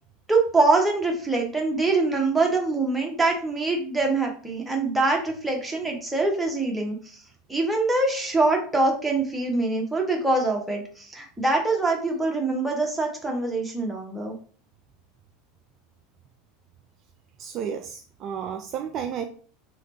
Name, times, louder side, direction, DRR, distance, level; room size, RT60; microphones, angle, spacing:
voice 1, 0.3-7.0 7.5-14.3, right 3 dB, 5° right, 0 dB, 0.9 m, -24 dB
voice 2, 17.4-19.3, right 8 dB, 40° right, 5 dB, 0.3 m, -32 dB
3.2 x 3.0 x 2.9 m, 0.42 s
figure-of-eight pair, 75°, 0 cm